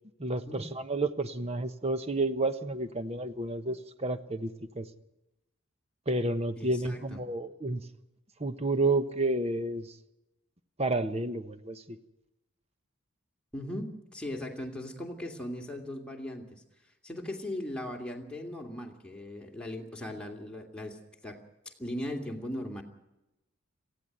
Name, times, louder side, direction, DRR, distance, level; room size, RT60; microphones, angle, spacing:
voice 1, 0.2-4.9 6.1-7.8 8.4-10.0 10.8-12.0, right 2 dB, 30° right, 10 dB, 1.1 m, -30 dB
voice 2, 6.6-7.2 13.5-16.6 17.0-21.4 21.8-22.8, left 1 dB, 5° left, 0 dB, 2.7 m, -38 dB
18.5 x 15.5 x 9.3 m, 0.94 s
head